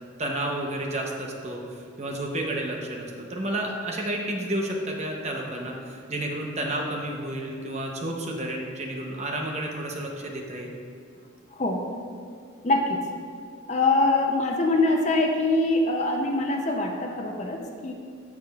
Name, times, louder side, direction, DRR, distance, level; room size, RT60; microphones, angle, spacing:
voice 1, 0.2-10.7, right 1 dB, 35° right, 1 dB, 0.8 m, -31 dB
voice 2, 11.5-11.8 12.6-13.0 13.7-17.9, left 2 dB, 35° left, 2 dB, 0.5 m, -24 dB
14.5 x 4.8 x 2.4 m, 2.3 s
head